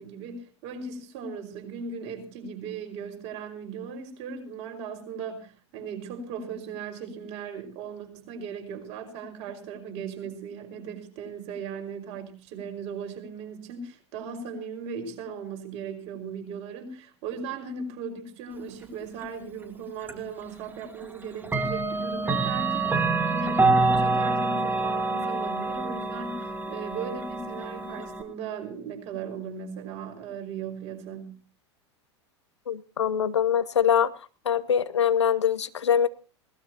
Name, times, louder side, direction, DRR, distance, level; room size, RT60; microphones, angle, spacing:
voice 1, 0.0-31.4, right 5 dB, 45° right, 4 dB, 5.4 m, -37 dB
Clock, 20.1-20.2 21.4-28.2, right 3 dB, 15° right, 2.1 m, -26 dB
voice 2, 32.7-34.1 34.4-36.1, left 8 dB, 75° left, 14 dB, 1.0 m, -23 dB
20.5 x 19.0 x 2.9 m, 0.36 s
figure-of-eight pair, 85°, 15 cm